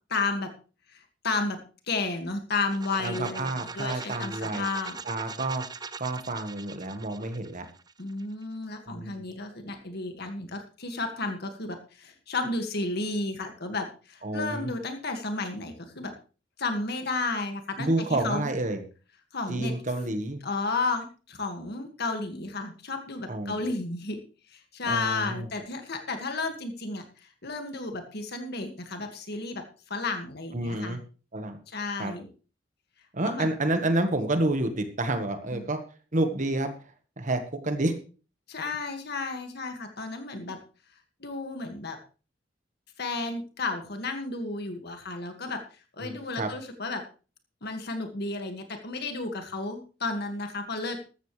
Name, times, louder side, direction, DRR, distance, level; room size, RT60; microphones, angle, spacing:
voice 1, 0.1-0.5 0.9-1.6 1.9-3.5 3.7-5.0 8.0-16.1 16.6-18.5 19.3-19.7 20.4-24.2 24.5-31.0 31.7-32.3 33.2-33.5 35.5-35.7 38.5-40.6 41.2-42.0 43.0-45.6 45.9-47.0 47.6-51.0, left 3 dB, 60° left, 5 dB, 2.0 m, -32 dB
sound 1, 2.6-8.4, right 4 dB, 20° right, 0.6 m, -41 dB
voice 2, 3.0-4.7 5.0-5.6 6.0-7.7 8.9-9.2 14.2-14.7 17.8-18.8 19.5-20.4 23.3-23.6 24.9-25.5 30.5-31.0 31.3-31.6 32.0-32.1 33.1-35.8 36.1-36.7 37.2-38.0 46.0-46.5, right 2 dB, 40° right, 7 dB, 1.5 m, -29 dB
14.5 x 13.0 x 3.3 m, 0.36 s
head